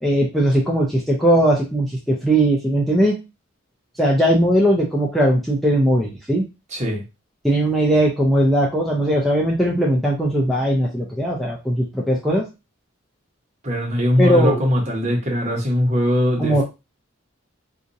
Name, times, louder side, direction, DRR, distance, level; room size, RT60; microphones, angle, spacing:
voice 1, 0.0-3.1 4.0-6.4 7.4-12.4 14.2-14.6 16.4-16.6, right 1 dB, ahead, -3 dB, 0.5 m, -19 dB
voice 2, 6.7-7.0 13.6-16.6, equal, 35° right, -1 dB, 1.1 m, -20 dB
4.1 x 2.5 x 2.6 m, 0.27 s
head